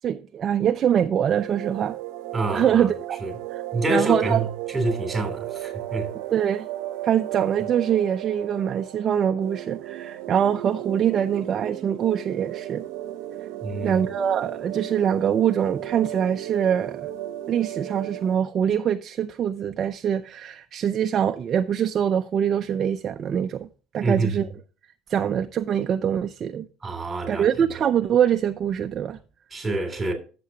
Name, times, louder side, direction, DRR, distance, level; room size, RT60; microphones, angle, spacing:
voice 1, 0.0-2.0 2.5-3.2 3.5-3.6 3.9-4.5 6.3-6.7 7.0-12.8 13.8-17.1 17.5-23.7 23.9-24.5 25.1-26.7 27.3-29.2, right 9 dB, 35° right, 0.4 m, -24 dB
sound 1, 1.3-18.3, right 14 dB, 80° right, 0.7 m, -35 dB
voice 2, 2.3-2.9 3.2-3.3 3.7-6.1 13.6-14.0 24.0-24.4 26.8-27.5 29.5-30.1, right 2 dB, 10° right, 2.9 m, -27 dB
13.0 x 6.8 x 2.8 m
cardioid pair, 150°, 0 cm